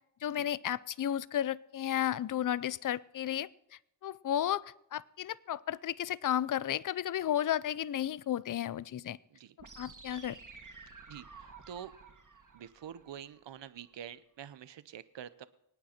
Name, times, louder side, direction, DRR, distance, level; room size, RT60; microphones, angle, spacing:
voice 1, 0.2-3.5 4.0-4.6 4.9-9.2 9.8-10.4, left 11 dB, 50° left, 20 dB, 0.5 m, -33 dB
sound 1, 9.6-13.6, right 4 dB, 45° right, 2.1 m, -53 dB
voice 2, 11.1-11.9 12.5-15.5, right 9 dB, 80° right, 15 dB, 0.8 m, -47 dB
25.0 x 9.1 x 4.4 m, 0.81 s
cardioid pair, 55°, 43 cm